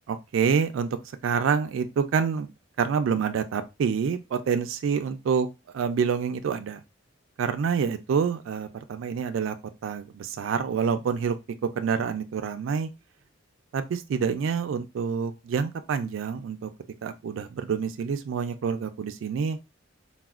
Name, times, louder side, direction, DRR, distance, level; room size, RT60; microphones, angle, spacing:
voice 1, 0.1-0.9 1.2-2.5 2.8-5.5 5.7-6.8 7.4-9.6 9.8-11.4 11.8-12.9 13.7-16.7 17.0-19.6, right 6 dB, 85° right, 0.3 m, -27 dB
4.0 x 2.1 x 2.3 m
head